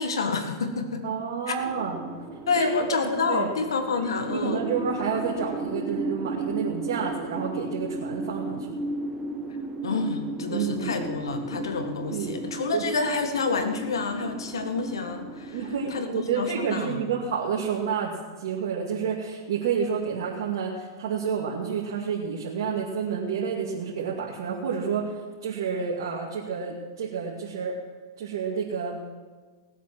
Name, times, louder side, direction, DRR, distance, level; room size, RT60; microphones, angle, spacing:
voice 1, 0.0-1.0 1.5-1.6 2.5-4.7 9.8-15.6 15.9-17.0, left 4 dB, 90° left, 7 dB, 1.7 m, -28 dB
voice 2, 1.0-2.0 2.6-3.0 3.3-3.6 4.0-8.7 10.5-11.1 12.1-12.4 12.7-12.8 15.5-18.1 18.4-25.2 25.4-27.7 28.2-29.0, right 6 dB, 70° right, -3 dB, 2.3 m, -29 dB
sound 1, 1.6-16.0, right 2 dB, 15° right, 1.7 m, -35 dB
18.0 x 8.3 x 6.1 m, 1.4 s
hypercardioid pair, 125°, 2 cm